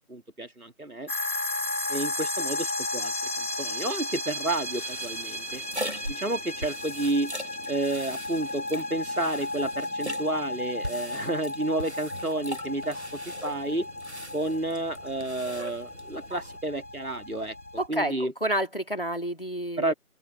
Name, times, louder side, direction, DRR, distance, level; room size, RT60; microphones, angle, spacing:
voice 1, 0.1-1.1 1.9-5.6 6.1-7.3 7.7-13.9 14.3-17.5 17.9-18.3 19.8-19.9, right 2 dB, 75° right, 2.4 m, -31 dB
sound 1, 1.1-17.9, left 2 dB, 85° left, 4.7 m, -34 dB
sound 2, 4.5-16.6, equal, 50° right, 1.4 m, -41 dB
voice 2, 17.8-19.9, right 1 dB, 40° left, 2.7 m, -29 dB
open air
figure-of-eight pair, 180°, 43 cm